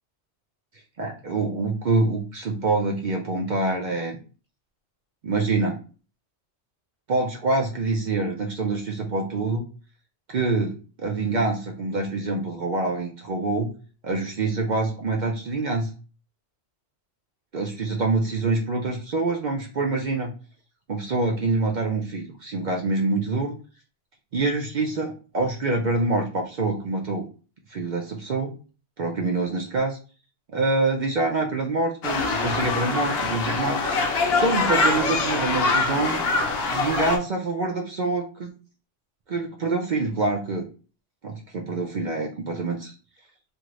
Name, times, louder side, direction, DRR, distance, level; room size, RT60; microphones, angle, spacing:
voice 1, 1.0-4.2 5.2-5.8 7.1-9.6 10.3-13.7 14.0-15.9 17.5-20.3 20.9-23.5 24.3-27.2 27.7-28.5 29.0-30.0 30.5-33.8 34.4-36.2 36.7-38.5 39.3-40.6 41.2-42.9, right 3 dB, 55° right, 2 dB, 0.5 m, -26 dB
sound 1, 32.0-37.2, left 3 dB, 70° left, 0.8 m, -24 dB
2.6 x 2.5 x 3.0 m, 0.36 s
omnidirectional pair, 1.2 m